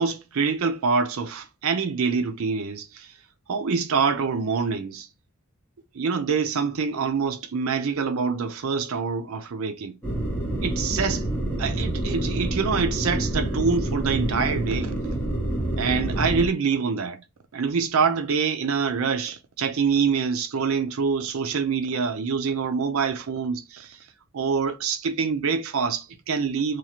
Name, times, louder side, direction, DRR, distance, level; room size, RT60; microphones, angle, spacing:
voice 1, 0.0-3.1 3.5-5.1 5.9-9.9 10.6-11.3 11.6-14.9 15.8-17.2 17.5-24.0 24.3-26.8, right 5 dB, 70° right, 0.5 m, -25 dB
sound 1, 10.0-16.5, right 1 dB, 10° left, 1.1 m, -27 dB
3.0 x 2.4 x 2.8 m
head